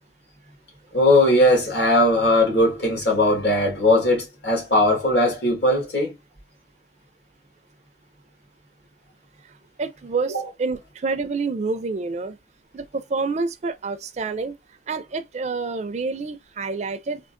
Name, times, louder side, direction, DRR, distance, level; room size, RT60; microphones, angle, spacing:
voice 1, 0.9-6.1 10.3-10.4, left 1 dB, 65° left, 1.5 m, -19 dB
voice 2, 9.8-12.4 12.7-14.5 14.9-17.2, right 4 dB, 40° right, 0.4 m, -28 dB
3.6 x 2.3 x 2.5 m
head